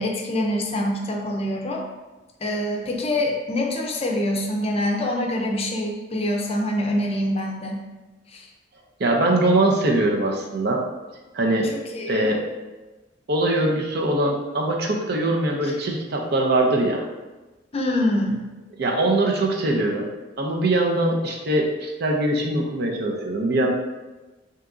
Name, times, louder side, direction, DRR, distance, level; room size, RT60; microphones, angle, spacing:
voice 1, 0.0-1.9 2.4-7.8 8.3-8.4 11.7-12.3 15.6-15.7 17.7-18.5, left 1 dB, 30° left, 1 dB, 0.5 m, -25 dB
voice 2, 9.0-10.8 11.3-11.7 12.1-12.5 13.3-17.0 18.8-20.1 20.4-23.7, right 2 dB, 60° right, 0 dB, 0.6 m, -22 dB
3.6 x 2.8 x 3.7 m, 1.2 s
head